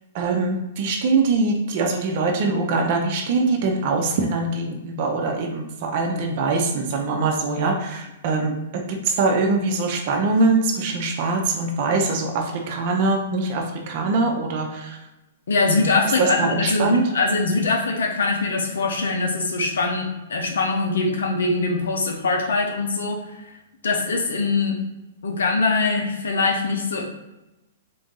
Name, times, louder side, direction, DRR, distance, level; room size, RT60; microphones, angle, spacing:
voice 1, 0.1-8.5 9.0-15.0 16.2-17.0, right 3 dB, 45° right, 2 dB, 0.6 m, -23 dB
voice 2, 15.5-23.2 23.8-24.8 25.2-27.0, left 3 dB, 85° left, 2 dB, 0.7 m, -22 dB
3.8 x 2.6 x 3.7 m, 0.98 s
hypercardioid pair, 145°, 0 cm